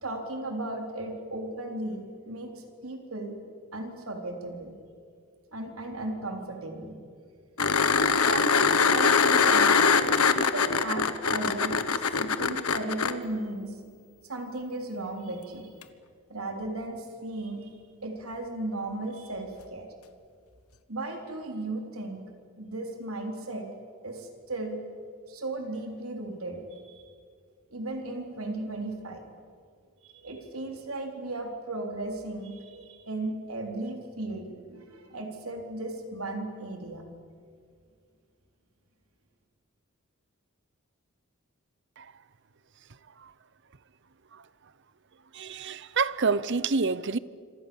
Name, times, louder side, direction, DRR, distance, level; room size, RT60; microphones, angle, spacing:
voice 1, 0.0-2.5 2.8-3.4 3.7-4.7 5.5-7.0 8.3-9.7 10.3-13.7 14.3-15.7 16.3-17.7 18.0-19.9 20.9-22.2 22.6-23.7 24.0-24.8 25.3-26.9 27.7-29.2 30.0-37.0, right 2 dB, 75° right, 4.0 m, -36 dB
sound 1, 7.6-13.1 15.8-15.9, left 5 dB, 80° left, 1.4 m, -23 dB
voice 2, 45.3-47.2, right 4 dB, 55° right, 0.8 m, -27 dB
27.0 x 26.0 x 7.2 m
head